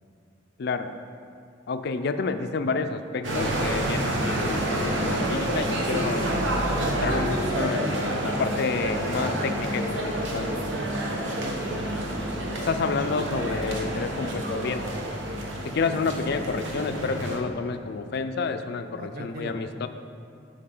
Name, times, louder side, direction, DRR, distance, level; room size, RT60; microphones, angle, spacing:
voice 1, 0.6-0.9 1.7-6.3 6.9-10.7 12.7-14.8 15.6-19.9, left 4 dB, 60° left, 9 dB, 0.4 m, -29 dB
sound 1, 3.2-17.4, right 1 dB, 70° right, 1.1 m, -28 dB
voice 2, 11.2-12.0 19.0-19.6, right 2 dB, 50° right, 5 dB, 0.7 m, -39 dB
15.0 x 5.0 x 3.8 m, 2.4 s
head